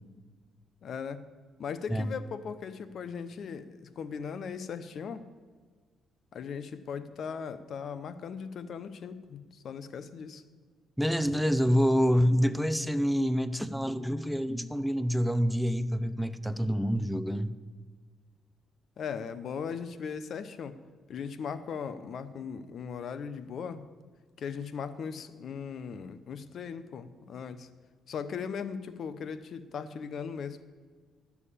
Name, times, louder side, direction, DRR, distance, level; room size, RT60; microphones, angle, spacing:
voice 1, 0.8-1.2 1.6-5.3 6.3-10.4 19.0-20.8 21.1-23.8 24.4-27.7 28.1-30.6, left 6 dB, 60° left, 13 dB, 0.8 m, -38 dB
voice 2, 11.0-17.5, equal, ahead, 12 dB, 0.6 m, -27 dB
11.0 x 7.2 x 8.5 m, 1.5 s
cardioid pair, 90°, 0 cm